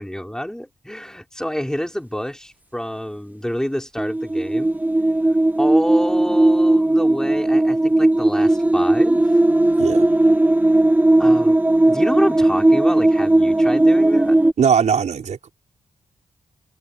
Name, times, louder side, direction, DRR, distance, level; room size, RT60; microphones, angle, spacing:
voice 1, 0.0-4.8 5.6-9.3 11.2-11.6 11.9-14.3, equal, 5° left, 5.0 m, -27 dB
sound 1, 4.0-14.5, right 1 dB, 10° right, 0.9 m, -17 dB
voice 2, 14.6-15.5, right 7 dB, 70° right, 4.9 m, -19 dB
cardioid pair, 70°, 13 cm